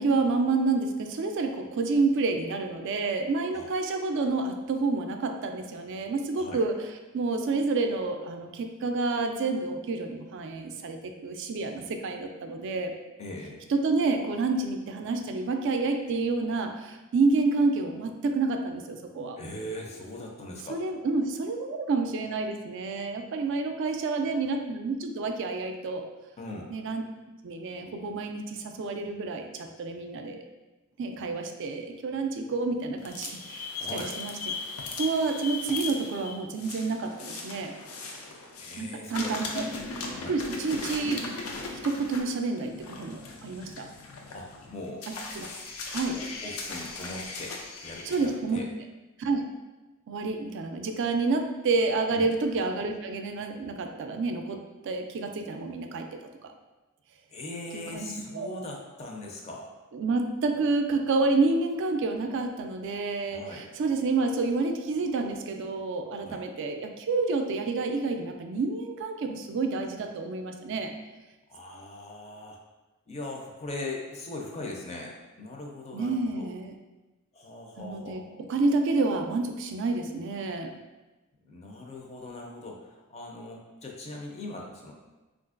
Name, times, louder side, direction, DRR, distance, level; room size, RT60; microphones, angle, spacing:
voice 1, 0.0-6.8 7.1-12.9 13.7-19.4 20.7-26.0 26.7-27.0 27.4-30.4 31.0-34.3 35.0-37.7 38.8-39.6 40.3-41.2 41.8-43.9 45.1-45.5 45.9-46.2 48.1-48.6 49.2-49.4 50.1-54.6 54.8-56.1 56.4-56.5 57.9-58.5 59.9-70.9 75.9-76.8 77.8-78.2 78.5-80.7, right 3 dB, 60° right, 5 dB, 0.3 m, -29 dB
voice 2, 13.2-13.6 19.4-20.8 23.9-24.4 26.4-26.7 33.8-34.2 38.6-39.5 40.1-40.4 44.3-45.0 46.2-48.7 52.1-52.3 57.3-59.7 63.3-63.7 66.2-66.4 71.5-72.6 73.1-76.5 77.3-78.4 81.5-84.9, left 2 dB, 30° left, 0 dB, 0.4 m, -40 dB
sound 1, 33.0-38.8 39.1-48.3, left 3 dB, 85° left, 0.5 m, -38 dB
3.7 x 2.4 x 2.4 m, 1.1 s
head